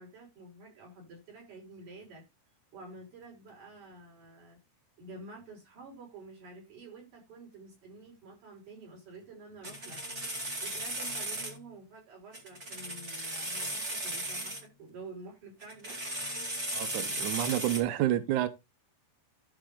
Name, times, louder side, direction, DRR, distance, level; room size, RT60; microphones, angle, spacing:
voice 1, 0.0-2.2 2.7-4.6 5.0-10.0 10.6-16.0, right 3 dB, 50° right, 6.8 m, -49 dB
sound 1, 9.6-11.6 12.3-14.6 15.6-17.8, right 1 dB, 25° right, 1.9 m, -36 dB
voice 2, 16.7-18.5, right 13 dB, 85° right, 1.8 m, -29 dB
13.0 x 4.6 x 3.8 m
omnidirectional pair, 4.8 m